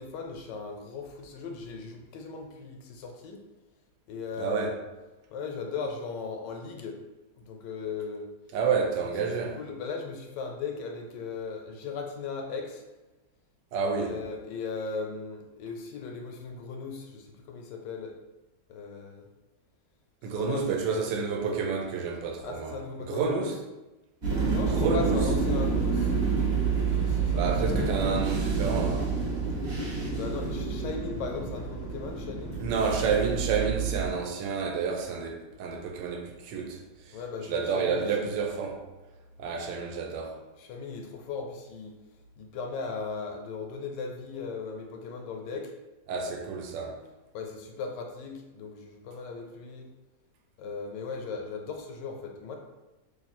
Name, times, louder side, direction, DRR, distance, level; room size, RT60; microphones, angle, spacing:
voice 1, 0.0-3.4 4.1-4.7 5.3-7.0 7.3-8.3 9.0-12.8 13.9-18.2 18.7-19.3 20.3-20.7 22.4-23.5 24.5-26.1 27.0-27.9 30.1-32.6 37.1-38.3 40.6-41.9 42.4-45.7 47.3-49.9 50.6-52.6, left 4 dB, 80° left, 1.2 m, -37 dB
voice 2, 4.4-4.7 8.5-9.6 13.7-14.2 20.2-23.6 24.7-25.3 27.3-29.1 32.6-36.8 37.5-38.8 39.4-40.4 46.1-47.0, right 5 dB, 80° right, 1.2 m, -29 dB
sound 1, 24.2-34.1, right 4 dB, 45° right, 1.0 m, -28 dB
3.0 x 2.6 x 4.1 m
omnidirectional pair, 1.9 m